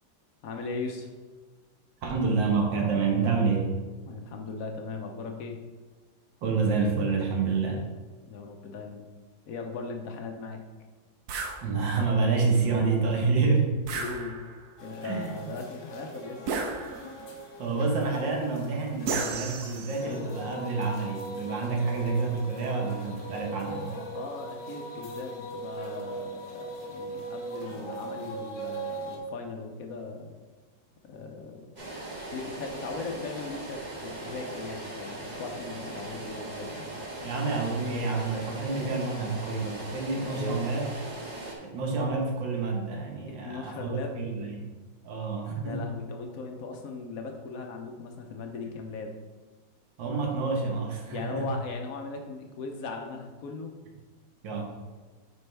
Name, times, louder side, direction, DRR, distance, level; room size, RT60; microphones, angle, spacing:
voice 1, 0.4-1.1 4.1-5.6 8.3-9.1 9.5-10.6 13.9-14.4 14.8-16.4 24.1-30.3 31.0-31.7 32.3-37.4 40.3-40.6 43.3-44.2 45.6-49.1 51.1-53.7, left 4 dB, 60° left, 3 dB, 1.1 m, -38 dB
voice 2, 2.0-3.7 6.4-7.8 11.6-13.7 15.0-15.4 17.6-23.9 37.2-40.9 41.6-44.7 45.0-45.8 50.0-51.5 54.4-54.6, right 4 dB, 80° right, 0 dB, 1.9 m, -28 dB
sound 1, 11.3-11.6 13.9-14.7 16.5-17.3 19.1-20.2, right 4 dB, 65° right, 1.2 m, -33 dB
sound 2, 14.8-29.2, right 2 dB, 85° left, 1.9 m, -40 dB
sound 3, 31.8-41.5, right 2 dB, 25° right, 1.1 m, -39 dB
9.5 x 4.5 x 3.4 m, 1.3 s
omnidirectional pair, 2.0 m